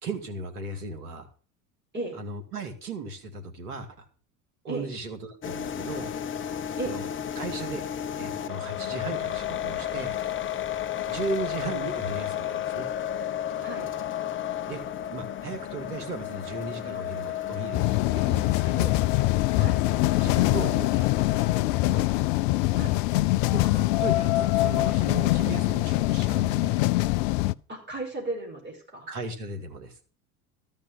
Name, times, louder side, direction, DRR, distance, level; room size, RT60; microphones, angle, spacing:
voice 1, 0.0-1.3 2.1-4.1 4.6-6.1 6.8-7.0 7.4-7.8 8.2-10.2 11.0-12.9 14.7-14.8 15.1-19.0 20.2-22.1 23.5-26.8 29.1-30.1, right 3 dB, 75° right, 6 dB, 2.4 m, -36 dB
sound 1, 5.4-21.6, left 10 dB, 25° left, 0.8 m, -33 dB
sound 2, 17.7-27.5, left 18 dB, 55° left, 0.5 m, -24 dB
voice 2, 27.7-29.1, right 2 dB, 25° right, 0 dB, 5.0 m, -35 dB
14.0 x 5.4 x 8.4 m, 0.40 s
hypercardioid pair, 75°, 45 cm